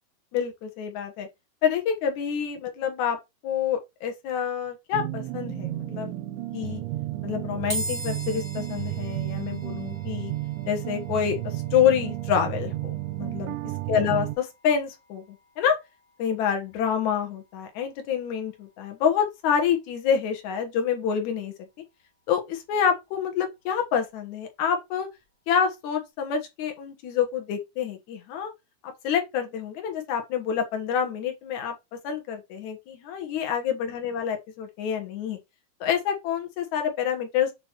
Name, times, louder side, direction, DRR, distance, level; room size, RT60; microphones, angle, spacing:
voice 1, 0.3-1.3 1.6-3.2 3.4-6.1 6.5-6.8 7.2-10.3 10.7-13.6 13.9-15.2 15.6-15.8 16.2-21.5 22.3-25.1 25.5-28.5 28.8-31.7 32.0-35.4 35.8-37.5, left 8 dB, 80° left, 1.7 m, -27 dB
sound 1, 4.9-14.4, right 16 dB, 85° right, 3.1 m, -32 dB
sound 2, 7.7-21.0, right 1 dB, 20° right, 0.9 m, -43 dB
7.7 x 2.9 x 4.3 m
omnidirectional pair, 5.1 m